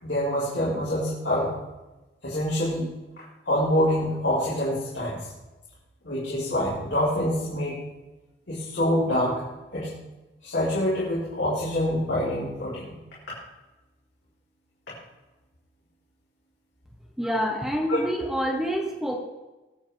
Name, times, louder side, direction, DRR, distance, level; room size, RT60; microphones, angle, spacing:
voice 1, 0.0-1.5 2.2-2.9 3.5-5.3 6.0-7.8 8.5-9.4 9.7-9.9 10.4-13.0 17.9-18.0, left 1 dB, 75° left, -8 dB, 4.0 m, -26 dB
voice 2, 17.2-19.2, equal, 5° right, 0 dB, 1.3 m, -27 dB
21.0 x 8.5 x 3.5 m, 1.1 s
head